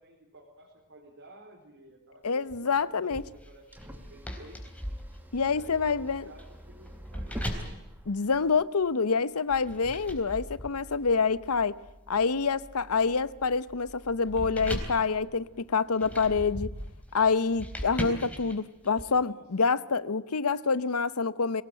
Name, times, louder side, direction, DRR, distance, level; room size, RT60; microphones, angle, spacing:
voice 1, 0.0-4.6 5.4-7.8 19.0-19.4, right 1 dB, 60° right, 4.4 m, -53 dB
voice 2, 2.2-3.2 5.3-6.2 8.1-11.7 12.1-16.7 17.1-21.6, left 5 dB, 85° left, 0.9 m, -27 dB
sound 1, 2.2-8.5, equal, 10° right, 2.2 m, -46 dB
sound 2, 3.1-8.9 9.5-19.0, equal, 5° left, 3.9 m, -40 dB
23.5 x 18.5 x 9.0 m
head